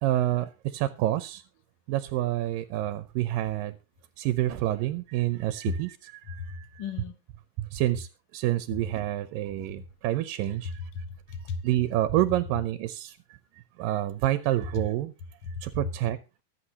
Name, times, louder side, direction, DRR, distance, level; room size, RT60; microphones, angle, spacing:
voice 1, 0.0-1.4 1.9-3.7 4.2-6.8 7.6-8.1 8.3-10.7 11.6-13.2 13.8-15.1 15.6-16.2, right 14 dB, 80° right, 2.4 m, -28 dB
voice 2, 6.3-7.2 10.9-11.6 15.4-15.9, left 5 dB, 55° left, 1.6 m, -35 dB
24.0 x 8.2 x 2.9 m
omnidirectional pair, 3.9 m